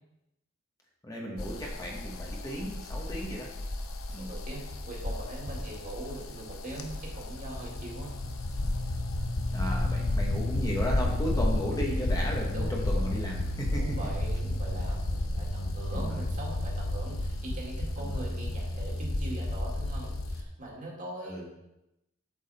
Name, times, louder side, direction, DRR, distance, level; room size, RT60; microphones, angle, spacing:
voice 1, 1.0-3.5 4.1-4.3 9.5-13.8 15.9-16.3 18.1-18.3 21.2-21.4, equal, 20° left, -2 dB, 1.3 m, -35 dB
sound 1, 1.4-20.4, left 1 dB, 90° left, 0.9 m, -32 dB
voice 2, 3.7-8.1 12.5-13.0 13.7-21.4, right 1 dB, 40° right, -3 dB, 2.3 m, -41 dB
8.1 x 7.3 x 4.3 m, 0.90 s
head